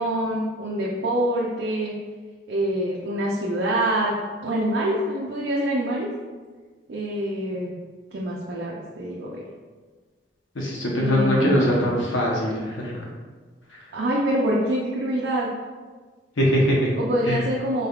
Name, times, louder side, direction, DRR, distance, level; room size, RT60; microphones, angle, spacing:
voice 1, 0.0-1.9 2.5-4.1 4.4-6.1 6.9-7.8 8.1-9.4 11.0-11.7 13.9-15.5 17.0-17.9, right 1 dB, 70° right, -4 dB, 0.5 m, -25 dB
voice 2, 10.5-13.1 13.7-13.8 16.4-16.9 17.2-17.4, equal, 90° left, -3 dB, 0.9 m, -22 dB
3.9 x 3.4 x 2.3 m, 1.4 s
head